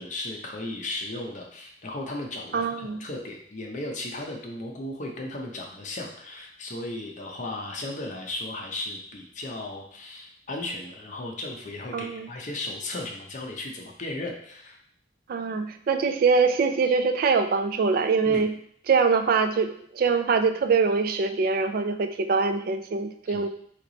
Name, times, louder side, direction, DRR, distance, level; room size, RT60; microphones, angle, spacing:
voice 1, 0.0-14.8 18.3-18.5 23.3-23.5, left 2 dB, 45° left, 0 dB, 0.7 m, -35 dB
voice 2, 2.5-3.0 11.9-12.3 15.3-18.5 18.9-23.5, right 5 dB, 55° right, 8 dB, 0.3 m, -23 dB
3.2 x 2.8 x 3.9 m, 0.64 s
head